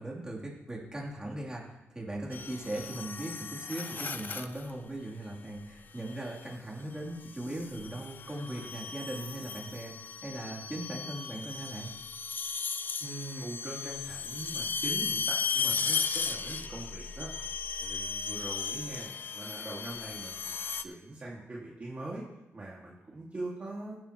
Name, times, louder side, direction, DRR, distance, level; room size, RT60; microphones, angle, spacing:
voice 1, 0.0-11.9, right 1 dB, 15° right, -4 dB, 3.3 m, -39 dB
sound 1, 2.3-4.7 6.1-6.5 7.3-20.8, left 5 dB, 45° left, 0.7 m, -36 dB
voice 2, 13.0-17.3 17.8-20.5 20.8-22.2 22.5-23.9, right 2 dB, 30° right, -5 dB, 2.2 m, -42 dB
17.0 x 11.0 x 3.1 m, 0.97 s
wide cardioid pair, 115°, 5 cm